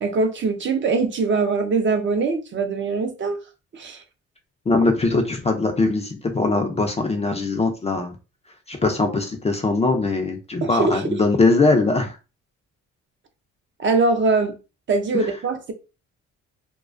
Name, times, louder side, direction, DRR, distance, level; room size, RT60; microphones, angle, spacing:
voice 1, 0.0-3.4 3.7-4.0 10.6-11.2 13.8-14.6 14.9-15.7, right 3 dB, 40° right, 0.5 m, -22 dB
voice 2, 4.7-8.2 8.7-12.2 15.1-15.3, left 3 dB, 20° left, 0.4 m, -21 dB
2.3 x 2.2 x 2.4 m
cardioid pair, 90°, 30 cm